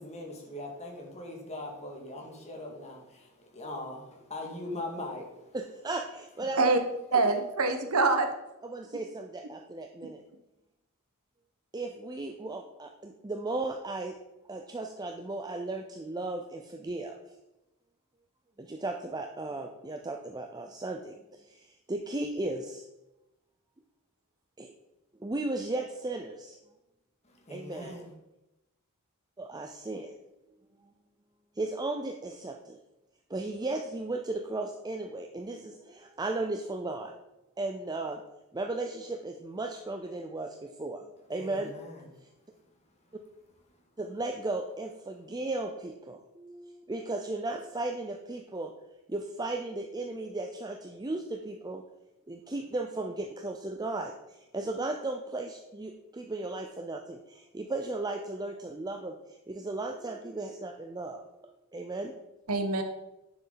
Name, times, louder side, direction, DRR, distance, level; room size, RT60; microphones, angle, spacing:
voice 1, 0.0-5.3 27.3-28.1 41.4-42.0, left 1 dB, 30° left, 1 dB, 2.0 m, -41 dB
voice 2, 5.5-6.7 7.1-7.2 8.6-10.2 11.7-14.2 14.5-17.2 18.6-22.8 24.6-24.7 25.2-26.6 27.5-28.0 29.4-30.1 31.6-32.8 33.3-37.1 37.6-38.2 38.5-41.0 41.3-41.7 44.0-48.7 49.1-51.8 52.3-61.2 61.7-62.1, right 2 dB, 20° right, 4 dB, 0.6 m, -36 dB
voice 3, 7.1-8.3 62.5-62.8, right 3 dB, 80° right, 6 dB, 1.2 m, -24 dB
10.0 x 7.1 x 4.0 m, 0.96 s
head